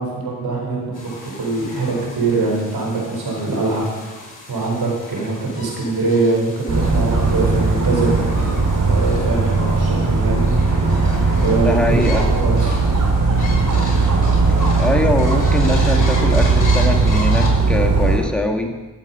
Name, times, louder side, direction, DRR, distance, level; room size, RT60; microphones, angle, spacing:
voice 1, 0.0-3.8 4.5-8.1 8.9-10.3 10.8-12.7, right 3 dB, 70° right, -2 dB, 4.5 m, -23 dB
sound 1, 0.9-17.5, left 2 dB, 50° left, 4.5 m, -35 dB
Dog, 6.7-18.2, right 3 dB, 50° right, 3.2 m, -17 dB
voice 2, 11.6-12.3 14.8-18.7, left 1 dB, ahead, 2 dB, 2.0 m, -22 dB
14.0 x 7.3 x 5.6 m, 1.2 s
supercardioid pair, 40°, 39 cm